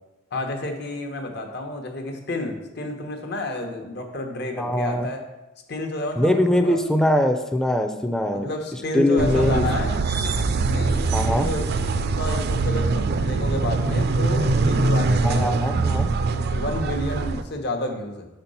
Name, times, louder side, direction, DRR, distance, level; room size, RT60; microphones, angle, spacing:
voice 1, 0.3-5.2 5.7-6.8 8.3-10.0 10.6-15.6 16.2-18.3, left 2 dB, 55° left, 4 dB, 1.0 m, -30 dB
voice 2, 4.6-5.1 6.2-8.5 8.9-9.6 11.1-11.5 15.2-16.1, left 1 dB, 5° left, 6 dB, 0.4 m, -22 dB
sound 1, 9.2-17.4, right 3 dB, 55° right, 0.4 m, -23 dB
6.3 x 4.4 x 5.4 m, 1.0 s
head